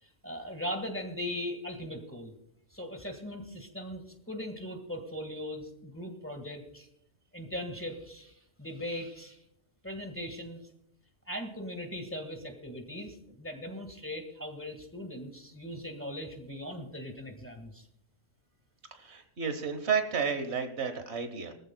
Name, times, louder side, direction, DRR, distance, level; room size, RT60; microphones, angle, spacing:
voice 1, 0.0-2.3 2.7-6.9 7.3-9.4 9.8-10.7 11.3-17.9, left 1 dB, 10° left, 5 dB, 1.6 m, -39 dB
voice 2, 18.9-21.5, right 6 dB, 65° right, 8 dB, 1.4 m, -32 dB
22.0 x 14.0 x 2.2 m, 0.74 s
omnidirectional pair, 1.2 m